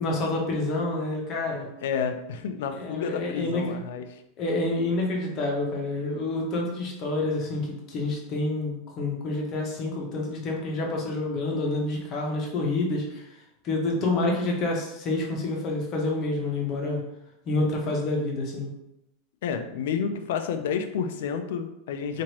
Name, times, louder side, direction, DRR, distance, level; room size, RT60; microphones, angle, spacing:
voice 1, 0.0-1.7 2.7-3.8 4.4-13.3 13.6-17.0 17.5-18.7, left 2 dB, 40° left, -1 dB, 0.9 m, -28 dB
voice 2, 1.5-4.2 19.4-22.2, left 6 dB, 75° left, 7 dB, 0.4 m, -30 dB
2.9 x 2.5 x 2.9 m, 0.84 s
supercardioid pair, 125°, 0 cm